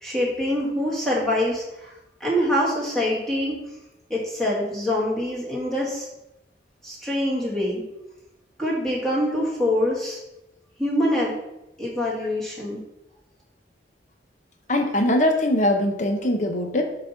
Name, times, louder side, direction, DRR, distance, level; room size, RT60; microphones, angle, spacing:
voice 1, 0.0-1.9 2.2-3.5 4.1-6.1 6.8-7.8 8.6-10.2 10.8-11.3 11.8-12.8, left 1 dB, ahead, -6 dB, 2.0 m, -24 dB
voice 2, 14.7-16.8, left 1 dB, 40° left, 4 dB, 0.9 m, -21 dB
6.3 x 4.1 x 5.8 m, 0.90 s
head